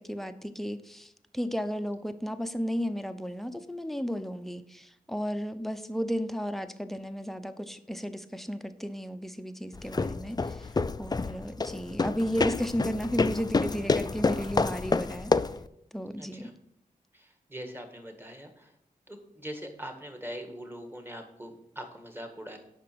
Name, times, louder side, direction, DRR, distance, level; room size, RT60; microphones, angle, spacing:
voice 1, 0.0-10.7 11.0-15.3 15.9-16.5, equal, ahead, 9 dB, 0.7 m, -34 dB
sound 1, 9.7-15.7, left 3 dB, 25° left, 0.4 m, -28 dB
voice 2, 16.2-16.5 17.1-18.7 19.1-22.6, equal, 15° right, 5 dB, 1.8 m, -42 dB
8.3 x 5.9 x 6.1 m, 0.78 s
cardioid pair, 60°, 15 cm